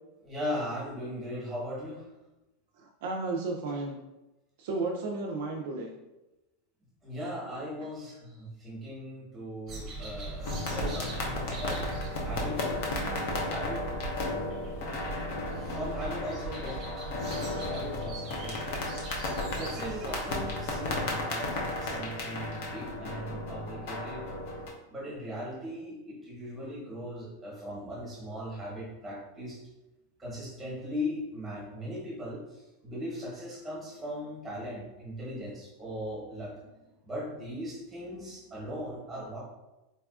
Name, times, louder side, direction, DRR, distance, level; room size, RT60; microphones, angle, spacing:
voice 1, 0.2-2.1 7.0-11.8 12.2-12.6 13.4-13.9 15.6-16.8 17.6-18.6 19.5-24.2 24.9-29.6 30.2-36.6 37.0-39.4, equal, 5° right, -7 dB, 1.0 m, -38 dB
voice 2, 2.8-4.0 4.6-5.9, right 3 dB, 55° right, 1 dB, 0.4 m, -33 dB
sound 1, 9.7-20.8, right 2 dB, 30° right, 0.7 m, -40 dB
sound 2, 10.4-24.7, left 2 dB, 50° left, 0.6 m, -34 dB
4.0 x 2.3 x 2.3 m, 1.0 s
supercardioid pair, 175°, 0 cm